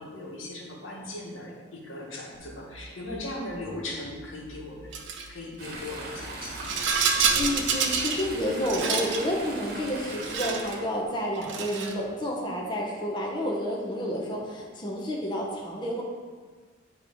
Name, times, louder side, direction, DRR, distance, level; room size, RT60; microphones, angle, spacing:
voice 1, 0.0-4.9 5.3-6.8, left 1 dB, 85° left, -1 dB, 1.3 m, -38 dB
sound 1, 2.3-5.4 5.8-8.8, right 1 dB, 90° right, 0.9 m, -50 dB
Rattle, 4.9-5.3 6.3-8.3 8.6-9.2 10.1-10.8 11.4-12.0, right 5 dB, 65° right, 0.7 m, -27 dB
Chatter / Stream, 5.6-10.8, right 2 dB, 50° right, 1.1 m, -39 dB
voice 2, 7.3-16.0, equal, 25° left, -2 dB, 0.8 m, -30 dB
9.1 x 3.1 x 5.0 m, 1.5 s
head